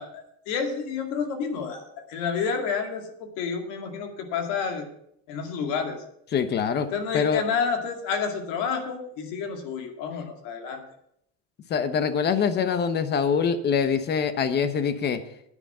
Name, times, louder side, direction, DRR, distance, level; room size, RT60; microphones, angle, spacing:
voice 1, 0.0-4.9 5.3-6.0 6.9-10.8, left 6 dB, 70° left, 4 dB, 2.3 m, -29 dB
voice 2, 6.3-6.9 7.1-7.4 11.7-15.2, left 6 dB, 30° left, 11 dB, 1.0 m, -24 dB
9.8 x 9.1 x 5.5 m, 0.72 s
cardioid pair, 150°, 32 cm